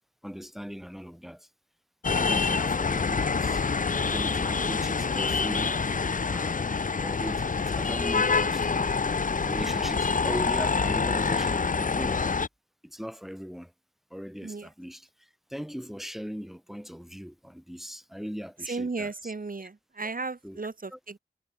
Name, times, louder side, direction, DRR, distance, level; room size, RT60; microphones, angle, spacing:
voice 1, 0.2-1.5 2.1-3.7 4.1-5.8 6.3-12.2 12.8-13.7 14.1-19.3 19.6-19.7 20.4-20.6 20.9-21.0, equal, ahead, 7.5 m, -39 dB
sound 1, 2.0-12.5, left 5 dB, 50° left, 0.8 m, -26 dB
voice 2, 18.7-21.2, right 3 dB, 55° right, 3.1 m, -35 dB
cardioid pair, 50°, 17 cm